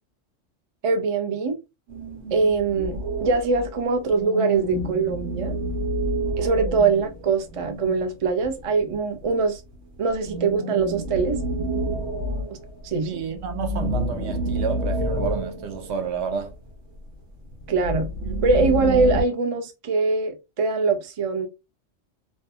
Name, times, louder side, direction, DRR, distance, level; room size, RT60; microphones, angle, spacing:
voice 1, 0.8-1.6 2.3-5.6 6.4-9.6 10.0-11.4 12.5-12.6 12.8-13.1 17.7-18.1 18.4-21.5, right 4 dB, 50° right, 0.4 m, -23 dB
sound 1, 1.9-3.7 4.1-8.5 10.2-12.9 13.3-16.5 17.5-19.2, right 1 dB, 90° right, 1.1 m, -29 dB
voice 2, 13.0-16.6, right 6 dB, 70° right, 0.8 m, -30 dB
2.5 x 2.1 x 2.7 m
omnidirectional pair, 1.3 m